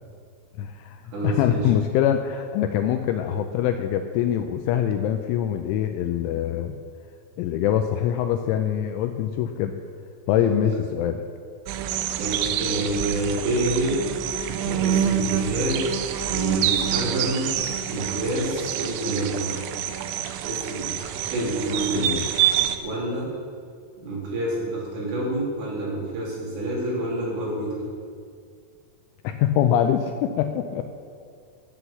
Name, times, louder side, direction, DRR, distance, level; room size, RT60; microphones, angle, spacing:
voice 1, 0.6-6.8 7.4-9.7 10.3-11.2 21.9-22.2 29.2-30.8, left 10 dB, 85° left, 6 dB, 2.8 m, -24 dB
voice 2, 1.1-1.7 10.3-10.6 12.2-14.0 14.6-16.0 16.2-17.5 17.9-19.5 20.4-20.9 21.3-22.1 22.8-23.3 24.0-27.7, right 1 dB, 60° right, -6 dB, 5.3 m, -28 dB
sound 1, 11.7-22.8, right 10 dB, 85° right, 2.7 m, -27 dB
13.0 x 8.1 x 7.0 m, 2.2 s
omnidirectional pair, 5.9 m